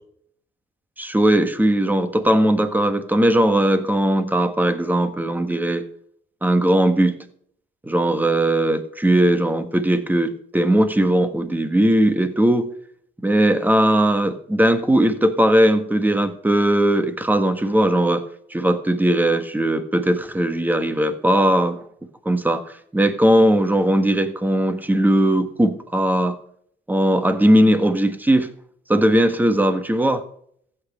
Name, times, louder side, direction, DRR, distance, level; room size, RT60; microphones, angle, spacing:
voice 1, 1.0-5.8 6.4-7.2 7.8-12.7 13.2-18.2 18.5-21.8 22.2-22.6 22.9-26.4 26.9-28.5 28.9-30.2, right 1 dB, 10° right, 9 dB, 1.4 m, -18 dB
15.0 x 8.7 x 5.3 m, 0.65 s
cardioid pair, 110°, 20 cm